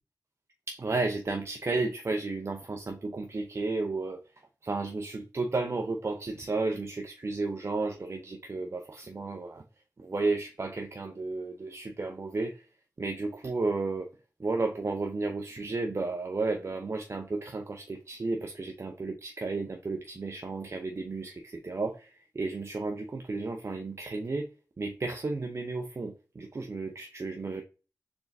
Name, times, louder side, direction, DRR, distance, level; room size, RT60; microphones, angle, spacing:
voice 1, 0.7-4.2 4.6-9.6 10.0-12.6 13.0-14.1 14.4-24.5 24.8-27.6, right 3 dB, 45° right, 4 dB, 0.6 m, -33 dB
4.2 x 3.5 x 2.6 m, 0.34 s
cardioid pair, 55°, 7 cm